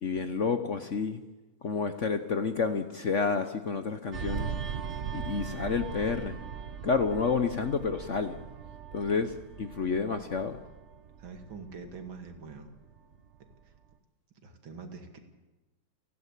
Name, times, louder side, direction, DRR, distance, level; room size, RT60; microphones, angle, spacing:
voice 1, 0.0-1.2 1.6-4.5 5.1-6.4 6.8-8.4 8.9-10.6, left 5 dB, 50° left, 9 dB, 0.9 m, -29 dB
sound 1, 4.1-13.2 13.5-13.8, right 7 dB, 50° right, 0.9 m, -39 dB
voice 2, 11.2-12.7 13.6-13.7 14.4-15.2, right 4 dB, 80° right, 5 dB, 3.0 m, -44 dB
29.5 x 12.0 x 8.3 m, 1.1 s
omnidirectional pair, 2.2 m